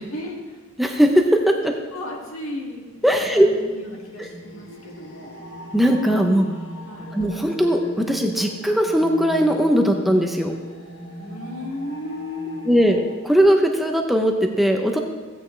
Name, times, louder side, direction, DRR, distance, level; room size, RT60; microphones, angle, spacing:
voice 1, 0.1-0.6 1.9-2.9 3.3-5.4 6.9-7.2 11.2-12.8, left 1 dB, 80° left, -1 dB, 2.0 m, -34 dB
voice 2, 0.8-1.7 3.0-3.5 4.2-4.3 5.7-6.5 7.1-10.5 12.7-13.0 13.2-15.0, equal, ahead, 2 dB, 0.6 m, -19 dB
sound 1, 2.9-13.1, equal, 60° left, 1.6 m, -38 dB
15.0 x 8.8 x 3.3 m, 1.4 s
head